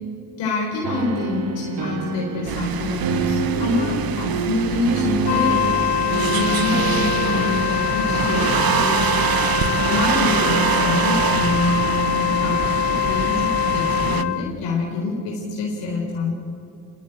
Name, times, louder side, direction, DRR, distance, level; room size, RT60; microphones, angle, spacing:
voice 1, 0.4-5.6 6.1-9.2 9.6-12.6 12.8-16.3, left 3 dB, 90° left, -1 dB, 4.2 m, -25 dB
sound 1, 0.8-7.6, right 5 dB, 85° right, 2.2 m, -27 dB
sound 2, 2.5-14.2, right 9 dB, 55° right, 1.1 m, -25 dB
Wind instrument woodwind instrument, 5.2-14.5, left 15 dB, 65° left, 0.5 m, -24 dB
25.0 x 21.5 x 8.8 m, 2.6 s
supercardioid pair, 65°, 42 cm